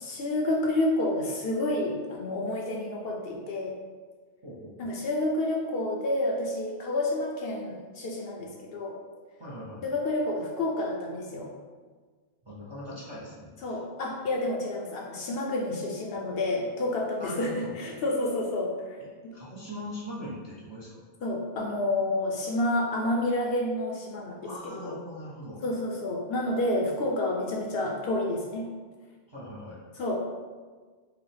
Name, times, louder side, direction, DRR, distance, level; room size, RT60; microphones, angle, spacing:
voice 1, 0.0-3.7 4.8-9.0 9.8-11.5 13.6-19.0 19.2-19.3 21.2-25.0 25.6-28.7 30.0-30.1, left 1 dB, 65° left, 0 dB, 0.7 m, -29 dB
voice 2, 4.4-4.9 9.4-9.9 12.4-13.8 17.2-17.7 19.3-21.0 24.4-25.6 29.3-29.8, left 1 dB, 30° right, -7 dB, 0.5 m, -41 dB
4.8 x 2.1 x 3.2 m, 1.5 s
omnidirectional pair, 1.2 m